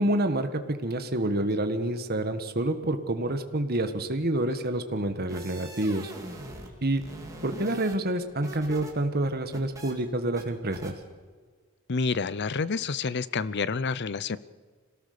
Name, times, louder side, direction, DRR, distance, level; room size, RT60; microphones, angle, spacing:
voice 1, 0.0-6.1 6.8-7.0 7.4-10.9, right 1 dB, 45° right, 7 dB, 1.6 m, -28 dB
sound 1, 5.3-6.7 7.0-8.9 9.2-9.9 10.4-10.5 10.7-10.9, right 1 dB, 15° right, 3.0 m, -43 dB
voice 2, 11.9-14.4, left 4 dB, 50° left, 17 dB, 0.6 m, -28 dB
25.5 x 18.0 x 6.8 m, 1.5 s
head